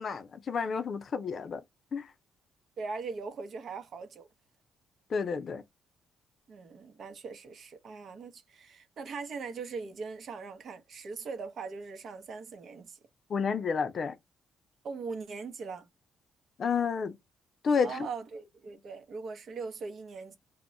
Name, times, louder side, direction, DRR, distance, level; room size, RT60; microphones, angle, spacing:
voice 1, 0.0-1.6 1.9-2.1 5.1-5.6 13.3-14.2 16.6-17.2 17.6-18.1, left 5 dB, 50° left, 0.4 m, -30 dB
voice 2, 2.8-4.3 6.5-13.0 14.8-15.9 17.8-20.4, right 4 dB, 60° right, 0.7 m, -40 dB
2.2 x 2.1 x 3.7 m
cardioid pair, 90°, 0 cm